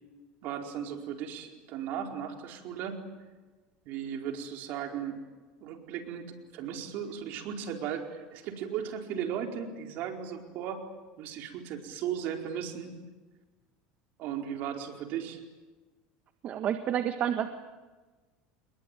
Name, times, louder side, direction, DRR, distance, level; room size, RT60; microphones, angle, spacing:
voice 1, 0.4-3.0 3.8-5.2 5.6-10.8 11.2-13.0 14.2-15.4, right 8 dB, 60° right, 4 dB, 4.6 m, -36 dB
voice 2, 16.4-17.5, right 10 dB, 45° right, 8 dB, 1.6 m, -29 dB
29.0 x 21.5 x 9.3 m, 1.3 s
supercardioid pair, 115°, 4 cm